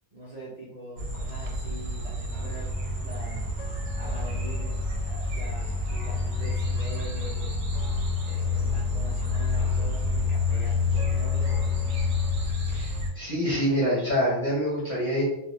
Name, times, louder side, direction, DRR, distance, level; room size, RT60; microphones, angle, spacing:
voice 1, 0.1-2.7 3.0-3.5 4.0-7.6 8.2-12.2, equal, 75° right, -5 dB, 0.3 m, -43 dB
sound 1, 1.0-13.1, left 3 dB, 90° right, 1.0 m, -28 dB
sound 2, 2.3-12.5, equal, 85° left, 1.0 m, -41 dB
voice 2, 12.7-15.2, equal, 40° left, -8 dB, 0.7 m, -26 dB
2.3 x 2.2 x 2.9 m, 0.87 s
omnidirectional pair, 1.4 m